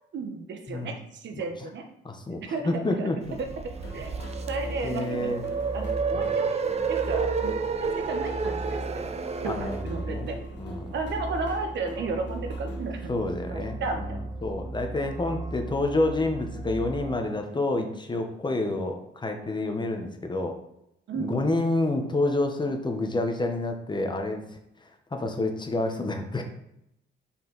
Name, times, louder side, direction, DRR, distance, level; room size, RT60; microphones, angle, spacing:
voice 1, 0.1-1.8 2.4-3.1 3.9-4.2 4.5-5.3 5.7-6.6 6.9-7.5 7.8-9.0 9.4-9.6 9.8-10.4 10.9-13.1 13.5-14.2 21.1-21.6, right 3 dB, 65° right, 5 dB, 1.0 m, -33 dB
voice 2, 2.0-3.4 4.8-5.4 6.1-6.4 9.5-10.3 10.6-10.9 13.1-14.2 14.4-20.5 21.2-24.4 25.1-26.4, left 2 dB, 20° left, 4 dB, 0.9 m, -28 dB
sound 1, 3.3-17.2, right 2 dB, 15° right, 1.2 m, -38 dB
sound 2, 3.3-9.8, right 5 dB, 30° right, 0.6 m, -30 dB
sound 3, 3.8-13.0, left 2 dB, 60° left, 1.4 m, -45 dB
5.6 x 4.5 x 4.0 m, 0.79 s
cardioid pair, 90°, 20 cm